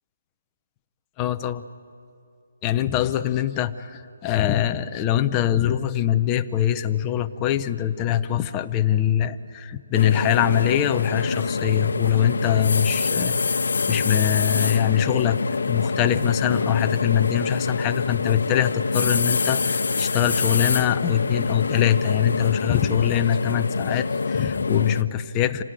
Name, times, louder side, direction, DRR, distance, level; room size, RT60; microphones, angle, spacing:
voice 1, 1.2-1.6 2.6-13.6 13.9-25.6, left 11 dB, 15° left, 8 dB, 0.6 m, -23 dB
sound 1, 9.9-25.0, left 4 dB, 80° left, 0.8 m, -25 dB
26.5 x 18.0 x 9.0 m, 2.5 s
hypercardioid pair, 175°, 0 cm